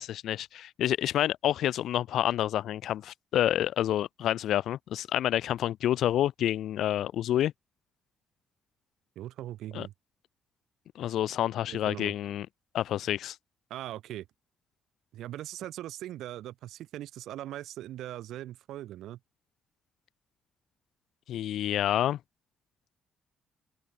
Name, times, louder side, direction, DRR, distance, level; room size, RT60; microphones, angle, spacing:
voice 1, 0.0-7.5 9.7-9.9 11.0-12.5 12.7-13.4 21.3-22.2, left 12 dB, 75° left, 0.4 m, -28 dB
voice 2, 9.1-9.9 11.7-12.1 13.7-14.3 15.1-19.2, right 13 dB, 85° right, 1.4 m, -40 dB
cardioid pair, 90°, 0 cm